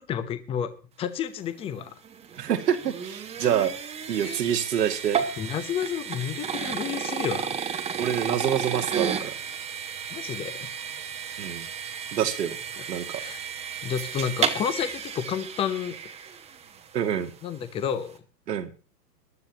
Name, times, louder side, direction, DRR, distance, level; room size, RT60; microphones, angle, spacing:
voice 1, 0.1-1.9 4.2-4.4 5.4-7.5 10.1-10.7 12.8-12.9 13.2-13.4 13.8-16.0 17.4-18.2, left 8 dB, 10° left, 10 dB, 0.7 m, -30 dB
sound 1, 1.7-16.9, right 7 dB, 15° right, 1.1 m, -33 dB
voice 2, 2.3-3.7 4.1-5.2 8.0-9.3 11.4-11.7 12.1-12.6 12.9-13.2 16.9-17.3 18.5-18.7, right 9 dB, 70° right, 8 dB, 2.1 m, -26 dB
22.5 x 11.5 x 2.9 m, 0.35 s
hypercardioid pair, 135°, 50 cm